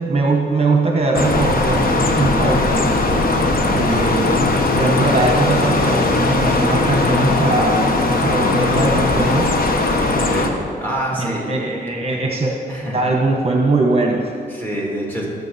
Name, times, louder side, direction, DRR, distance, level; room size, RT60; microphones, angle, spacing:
voice 1, 0.0-2.9 3.7-4.5 4.7-7.9 8.2-9.6 11.2-12.5 12.9-14.3, right 2 dB, 35° right, 1 dB, 1.0 m, -20 dB
sound 1, 1.1-10.5, left 2 dB, 60° left, 1.1 m, -18 dB
voice 2, 10.3-11.6 12.1-12.2 12.7-13.0 14.5-15.3, right 1 dB, 10° left, -4 dB, 2.9 m, -26 dB
19.0 x 7.2 x 4.1 m, 2.2 s
wide cardioid pair, 125°, 17 cm